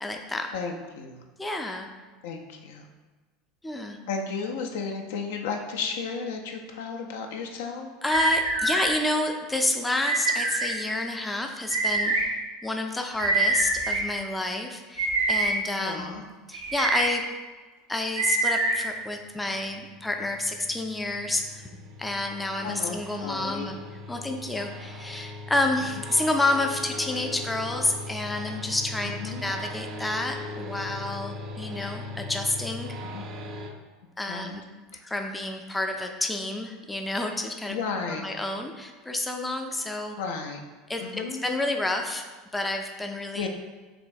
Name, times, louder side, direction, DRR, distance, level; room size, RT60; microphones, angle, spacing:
voice 1, 0.0-0.5 1.4-1.9 3.6-4.0 8.0-12.4 12.6-16.2 16.5-17.2 17.9-21.7 22.0-23.8 24.1-33.0 34.2-34.6 35.0-37.8 38.1-40.2 40.9-42.3 42.5-43.5, left 2 dB, 10° left, 4 dB, 0.4 m, -29 dB
voice 2, 0.5-1.2 2.2-2.9 4.1-7.9 15.8-16.2 22.6-23.7 29.0-29.5 33.1-33.2 34.3-34.6 37.7-38.2 40.2-40.6 41.0-41.4 43.4-43.5, left 5 dB, 70° left, 2 dB, 0.5 m, -33 dB
sound 1, 8.1-8.9 10.0-10.7 11.7-12.2 13.2-14.0 15.0-15.5 16.5-17.1 18.2-18.7, right 2 dB, 75° right, 0.9 m, -25 dB
sound 2, 19.0-33.7, left 2 dB, 50° right, 0.5 m, -39 dB
5.0 x 3.3 x 2.6 m, 1.3 s
figure-of-eight pair, 75°, 0 cm